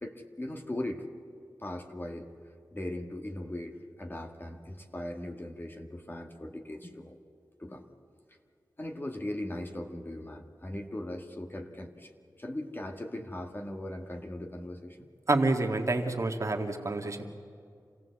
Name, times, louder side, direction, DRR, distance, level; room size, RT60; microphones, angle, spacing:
voice 1, 0.0-1.1 1.6-2.3 2.7-7.2 7.6-7.8 8.8-12.1 12.4-15.1, left 1 dB, 30° left, 4 dB, 1.7 m, -39 dB
voice 2, 15.3-17.2, right 2 dB, 45° right, 3 dB, 1.8 m, -28 dB
27.0 x 17.0 x 8.1 m, 2.4 s
wide cardioid pair, 75°, 7 cm